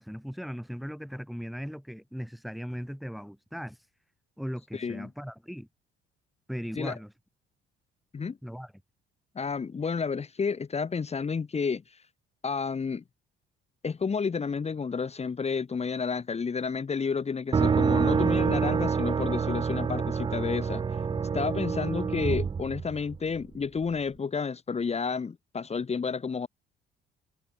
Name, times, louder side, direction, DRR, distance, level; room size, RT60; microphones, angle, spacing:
voice 1, 0.0-3.8 4.4-5.7 6.5-7.1 8.4-8.7, equal, ahead, 3.9 m, -38 dB
voice 2, 4.7-5.1 6.8-7.0 8.1-8.4 9.4-12.0 12.4-13.0 13.8-21.0 21.3-26.5, left 5 dB, 30° left, 2.2 m, -31 dB
sound 1, 17.5-23.4, right 6 dB, 25° right, 0.5 m, -27 dB
supercardioid pair, 80°, 20 cm